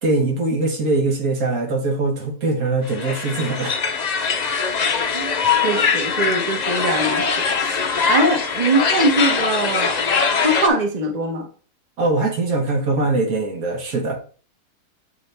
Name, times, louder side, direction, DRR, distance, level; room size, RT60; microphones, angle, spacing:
voice 1, 0.0-3.7 12.0-14.2, right 2 dB, 65° right, 1.6 m, -22 dB
sound 1, 2.8-10.7, left 5 dB, 70° left, 0.4 m, -22 dB
voice 2, 5.6-7.2 7.6-7.8 8.1-10.0 10.3-11.4, right 2 dB, 30° right, 0.9 m, -21 dB
7.8 x 4.0 x 3.3 m
omnidirectional pair, 1.6 m